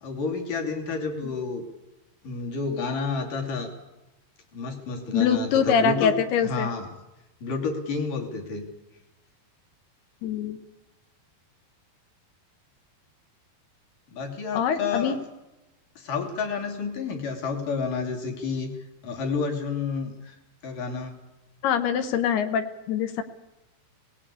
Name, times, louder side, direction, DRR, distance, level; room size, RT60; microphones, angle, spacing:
voice 1, 0.0-1.6 2.2-3.7 4.5-6.9 7.4-8.6 14.1-15.2 16.0-18.7 19.0-20.4 20.6-21.1, left 4 dB, 55° left, 3 dB, 4.1 m, -30 dB
voice 2, 5.1-6.7 10.2-10.6 14.5-15.2 21.6-23.2, left 7 dB, 75° left, 9 dB, 3.1 m, -24 dB
20.5 x 18.5 x 8.4 m, 0.99 s
omnidirectional pair, 4.8 m